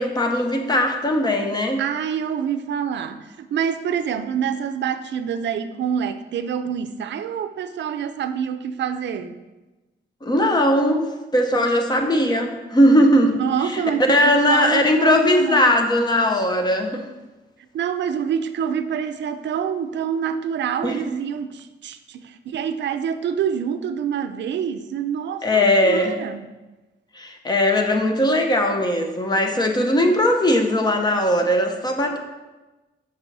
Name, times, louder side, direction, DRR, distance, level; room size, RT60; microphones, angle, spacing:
voice 1, 0.0-1.8 10.2-13.4 13.6-13.8 14.1-17.1 20.8-21.0 25.4-26.2 27.2-32.2, left 1 dB, 20° left, 4 dB, 0.6 m, -19 dB
voice 2, 1.8-9.4 13.3-15.7 17.7-26.5, right 8 dB, 75° right, 9 dB, 0.4 m, -26 dB
6.1 x 5.4 x 3.9 m, 1.1 s
wide cardioid pair, 175°, 19 cm